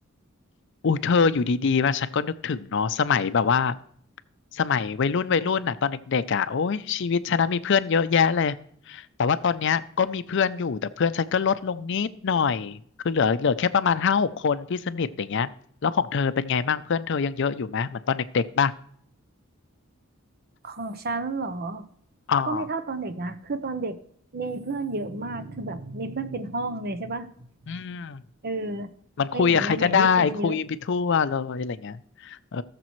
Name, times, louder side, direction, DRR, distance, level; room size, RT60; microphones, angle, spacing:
voice 1, 0.8-3.8 4.5-8.6 8.9-12.8 13.0-15.5 15.8-18.7 22.3-22.7 27.7-28.2 29.2-32.6, left 6 dB, 60° left, 14 dB, 0.5 m, -24 dB
voice 2, 20.6-21.9 22.4-24.0 24.3-27.3 27.7-27.8 28.4-28.9 29.3-30.6, right 3 dB, 50° right, 10 dB, 0.8 m, -31 dB
18.0 x 6.8 x 3.1 m, 0.62 s
head